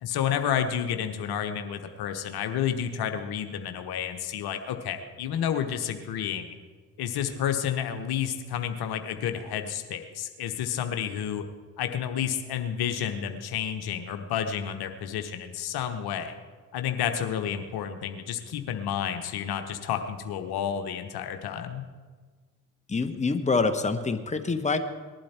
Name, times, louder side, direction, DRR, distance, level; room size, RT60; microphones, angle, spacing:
voice 1, 0.0-6.5 7.0-11.4 11.8-16.3 16.7-21.9, left 9 dB, 60° left, 7 dB, 1.1 m, -30 dB
voice 2, 22.9-24.8, left 4 dB, 15° left, 8 dB, 1.2 m, -26 dB
19.5 x 12.0 x 4.4 m, 1.5 s
figure-of-eight pair, 40°, 43 cm